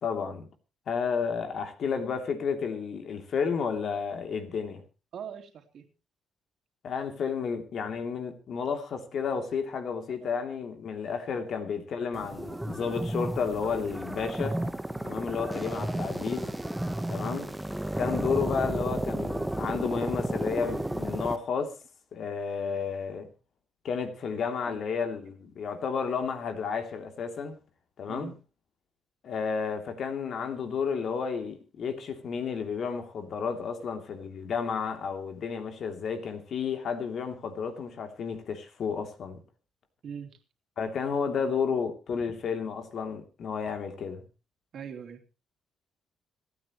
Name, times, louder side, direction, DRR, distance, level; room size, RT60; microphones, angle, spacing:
voice 1, 0.0-0.5 0.9-4.8 6.8-14.6 15.0-16.5 17.1-17.5 18.0-21.8 22.1-23.3 23.8-27.6 28.0-28.3 29.2-39.4 40.8-44.2, left 6 dB, 60° left, 2.9 m, -32 dB
voice 2, 5.1-5.9 10.1-10.3 17.2-17.5 20.7-20.9 24.7-24.8 28.0-28.4 40.0-40.4 42.1-42.3 44.7-45.2, right 8 dB, 65° right, 2.9 m, -42 dB
sound 1, 12.1-21.4, right 1 dB, 5° right, 1.1 m, -32 dB
26.0 x 9.3 x 3.1 m
cardioid pair, 90°, 0 cm